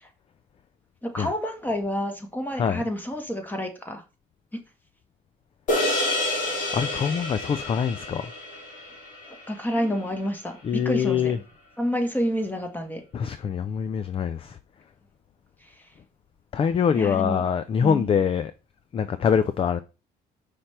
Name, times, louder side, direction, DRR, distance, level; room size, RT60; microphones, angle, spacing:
voice 1, 1.0-4.0 9.5-11.3 11.8-13.0 17.0-17.4 17.8-18.2, equal, 10° left, 1.5 m, -29 dB
sound 1, 5.7-10.3, left 1 dB, 50° left, 2.7 m, -29 dB
voice 2, 6.7-8.3 10.6-11.4 13.1-14.6 16.5-18.5 18.9-19.8, left 7 dB, 35° left, 0.4 m, -24 dB
5.6 x 3.3 x 5.7 m
cardioid pair, 110°, 17 cm